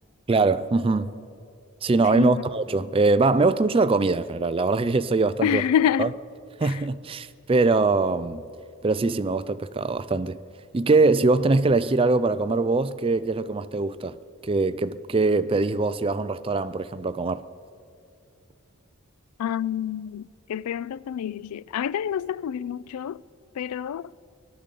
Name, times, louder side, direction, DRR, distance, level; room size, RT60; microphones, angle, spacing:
voice 1, 0.3-1.1 1.8-5.6 6.0-6.1 6.6-8.5 8.8-10.4 10.7-14.2 14.4-17.4, right 3 dB, 25° right, 0.4 m, -22 dB
voice 2, 5.4-6.1 6.6-6.8 19.4-23.2 23.6-24.1, left 9 dB, 85° left, 0.3 m, -27 dB
17.5 x 12.0 x 6.8 m
head